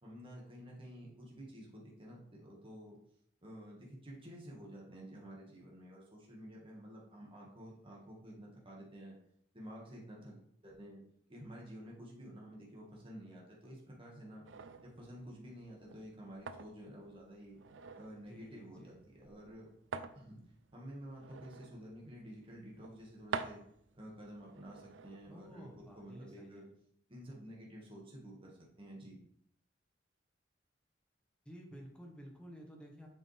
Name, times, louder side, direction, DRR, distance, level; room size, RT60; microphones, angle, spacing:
voice 1, 0.0-3.0 3.4-9.1 9.5-11.0 11.3-14.5 14.8-17.6 18.0-19.7 20.1-20.4 20.7-23.6 23.9-26.7 27.1-29.2, equal, 30° right, -3 dB, 1.9 m, -51 dB
sound 1, 14.4-26.3, right 5 dB, 80° right, 0.5 m, -49 dB
voice 2, 18.3-18.9 25.3-26.7 31.4-33.1, equal, 5° left, -1 dB, 1.5 m, -52 dB
7.8 x 5.5 x 3.5 m, 0.69 s
head